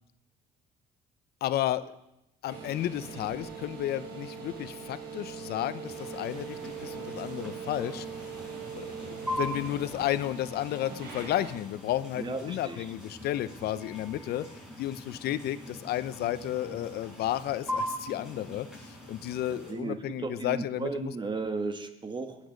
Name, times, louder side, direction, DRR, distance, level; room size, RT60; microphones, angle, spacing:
voice 1, 1.4-1.9 2.4-8.1 8.7-14.5 14.8-21.1, left 13 dB, 70° left, 14 dB, 0.7 m, -32 dB
sound 1, 2.5-11.5, right 5 dB, 80° right, 4.4 m, -41 dB
sound 2, 5.8-19.7, equal, 5° right, 6.1 m, -41 dB
voice 2, 12.1-12.9 19.7-22.4, right 4 dB, 25° right, 8 dB, 1.6 m, -35 dB
19.0 x 10.0 x 5.2 m, 0.89 s
cardioid pair, 110°, 17 cm